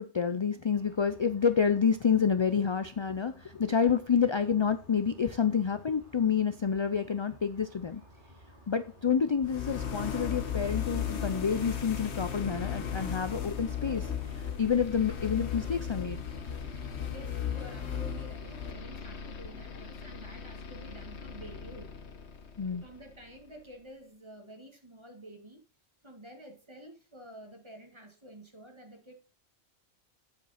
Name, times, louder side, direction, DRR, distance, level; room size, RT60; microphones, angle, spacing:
voice 1, 0.0-8.0 8.7-16.2 22.6-22.8, left 6 dB, 40° left, 10 dB, 0.4 m, -28 dB
sound 1, 0.7-19.3, equal, 85° right, 3.7 m, -56 dB
sound 2, 9.4-23.3, left 8 dB, 70° left, 1.3 m, -37 dB
voice 2, 16.8-22.0 22.8-25.6 26.0-29.1, right 1 dB, 25° right, 3 dB, 2.0 m, -50 dB
8.6 x 7.6 x 4.2 m, 0.37 s
omnidirectional pair, 1.2 m